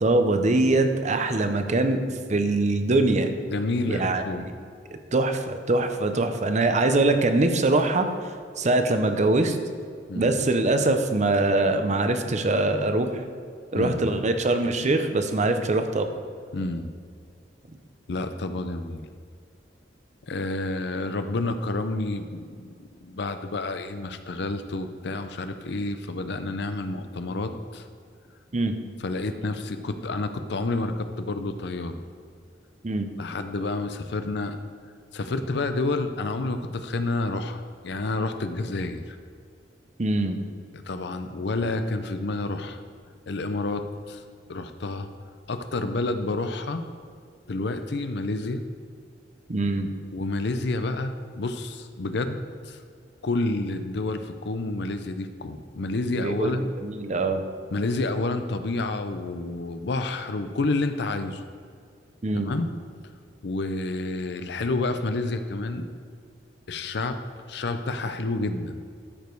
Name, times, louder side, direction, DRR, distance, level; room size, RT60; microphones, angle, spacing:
voice 1, 0.0-2.0 2.3-3.3 3.9-4.5 5.1-8.1 8.6-9.6 10.1-13.2 13.7-16.1 28.5-28.7 32.8-33.1 40.0-40.4 49.5-49.9 56.2-57.4 62.2-62.5, right 2 dB, 40° right, 7 dB, 0.7 m, -23 dB
voice 2, 3.4-4.5 10.1-10.3 13.7-14.1 16.5-16.9 18.1-19.1 20.2-22.7 23.0-27.9 29.0-31.9 33.2-34.6 35.1-39.2 40.9-42.8 43.3-44.2 44.5-45.1 45.5-46.8 47.5-48.6 50.1-52.8 53.2-56.7 57.7-61.4 62.3-62.7 63.4-65.9 66.7-67.2 67.5-68.8, left 2 dB, 65° left, 9 dB, 0.6 m, -29 dB
12.5 x 5.2 x 4.6 m, 2.1 s
head